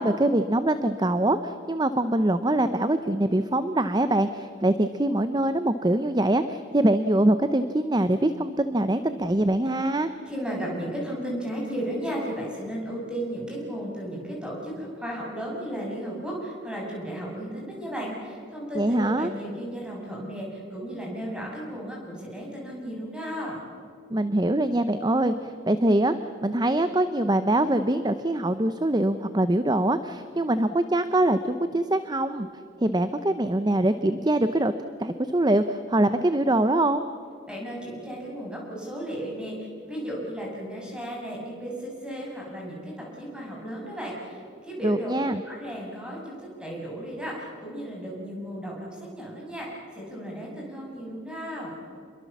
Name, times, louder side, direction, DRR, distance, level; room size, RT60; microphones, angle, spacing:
voice 1, 0.0-10.1 18.7-19.3 24.1-26.2 26.4-32.5 32.8-37.0 44.8-45.4, right 1 dB, 25° right, 11 dB, 0.7 m, -23 dB
voice 2, 10.3-23.6 37.5-45.1 45.4-51.8, equal, 5° right, -3 dB, 6.7 m, -34 dB
28.0 x 22.0 x 7.2 m, 2.4 s
head